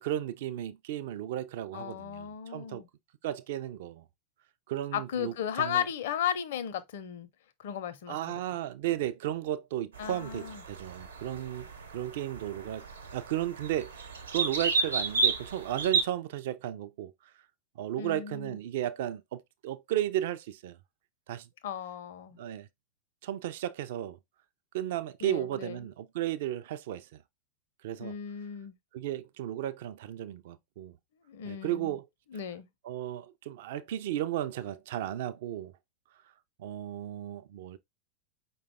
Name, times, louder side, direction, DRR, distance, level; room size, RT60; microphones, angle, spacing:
voice 1, 0.0-2.8 3.2-4.0 4.7-5.8 8.1-12.9 13.1-14.0 14.3-17.1 17.8-20.8 21.3-21.5 22.4-22.7 23.2-24.2 24.7-27.1 27.8-28.1 28.9-30.9 31.4-32.1 32.8-35.7 36.6-37.8, right 12 dB, 55° right, 0.4 m, -34 dB
voice 2, 1.7-2.9 4.9-7.3 7.6-8.4 10.0-10.6 18.0-18.6 21.6-22.4 25.2-25.9 28.0-28.8 31.3-32.0 32.3-32.7, left 9 dB, 55° left, 0.6 m, -35 dB
sound 1, 9.9-16.0, right 4 dB, 70° right, 0.9 m, -32 dB
5.0 x 2.2 x 3.4 m
figure-of-eight pair, 90°, 0 cm